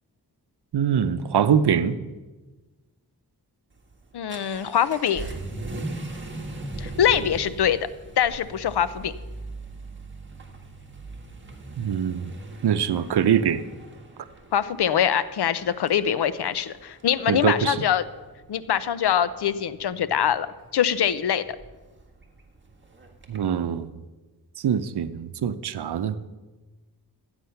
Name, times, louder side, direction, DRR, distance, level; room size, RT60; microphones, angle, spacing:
voice 1, 0.7-2.0 11.8-12.3 12.6-13.6 17.3-17.8 23.3-23.9 24.6-26.1, right 8 dB, 90° right, 12 dB, 0.7 m, -23 dB
Vehicle / Accelerating revving vroom, 3.7-23.5, right 2 dB, 30° right, 1.7 m, -40 dB
voice 2, 4.1-5.3 6.8-7.9 8.2-9.1 14.5-18.0 18.5-20.5 20.7-21.4, left 9 dB, 90° left, 14 dB, 0.7 m, -23 dB
13.0 x 8.9 x 5.7 m, 1.2 s
wide cardioid pair, 100°, 38 cm